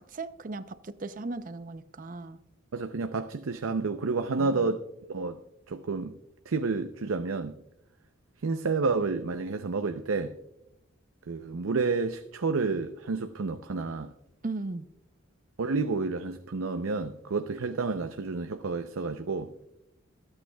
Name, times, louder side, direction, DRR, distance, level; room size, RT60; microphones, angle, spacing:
voice 1, 0.0-2.4 4.4-4.8 14.4-14.9, right 3 dB, 40° right, 0.6 m, -37 dB
voice 2, 2.7-4.8 5.1-5.4 5.7-6.1 6.5-7.5 8.4-10.3 11.3-14.1 15.6-19.6, right 4 dB, 90° right, 0.6 m, -30 dB
26.0 x 8.9 x 2.3 m
head